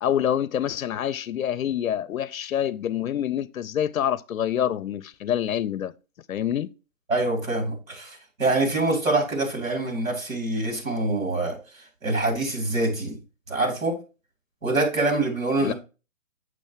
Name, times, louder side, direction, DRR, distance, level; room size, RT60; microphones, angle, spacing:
voice 1, 0.0-5.9 6.3-6.7 15.6-15.7, left 10 dB, 80° left, 0.6 m, -26 dB
voice 2, 7.1-11.6 12.0-13.2 13.5-14.0 14.6-15.7, right 2 dB, 70° right, 3.2 m, -25 dB
6.4 x 6.2 x 2.9 m
hypercardioid pair, 165°, 41 cm